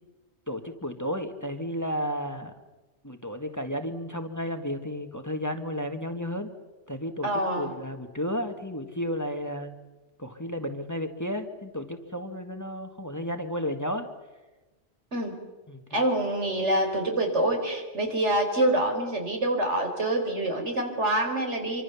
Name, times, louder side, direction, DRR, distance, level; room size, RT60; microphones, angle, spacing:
voice 1, 0.5-2.5 3.0-6.5 6.9-7.3 7.5-9.8 10.2-14.1 15.7-16.0, equal, 15° left, 6 dB, 1.6 m, -33 dB
voice 2, 7.2-7.7 15.1-15.3 15.9-21.8, right 1 dB, 85° right, 3 dB, 4.6 m, -26 dB
26.0 x 25.0 x 7.0 m, 1.2 s
omnidirectional pair, 1.2 m